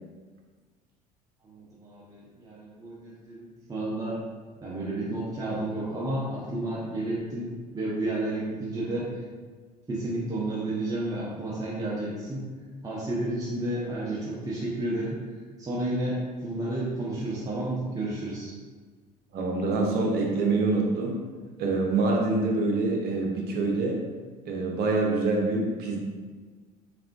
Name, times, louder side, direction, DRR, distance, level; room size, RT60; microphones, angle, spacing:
voice 1, 1.4-4.2 4.6-9.2 9.9-12.5 12.8-15.2 15.6-18.5, right 1 dB, 15° right, -8 dB, 1.1 m, -31 dB
voice 2, 19.3-21.2 21.6-24.0 24.5-26.0, right 3 dB, 50° right, 0 dB, 0.9 m, -25 dB
3.6 x 3.6 x 3.6 m, 1.5 s
figure-of-eight pair, 60°, 21 cm